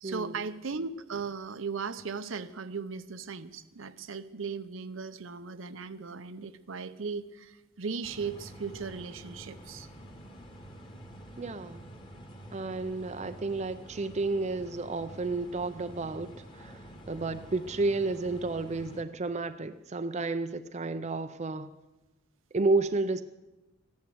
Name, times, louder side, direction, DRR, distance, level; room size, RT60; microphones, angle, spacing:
voice 1, 0.0-9.9, right 5 dB, 70° right, 12 dB, 0.7 m, -37 dB
sound 1, 8.0-19.0, right 1 dB, 25° left, 1.7 m, -48 dB
voice 2, 11.4-11.8 12.5-21.7 22.5-23.2, right 3 dB, 35° right, 9 dB, 0.5 m, -31 dB
14.5 x 10.5 x 7.8 m, 1.1 s
head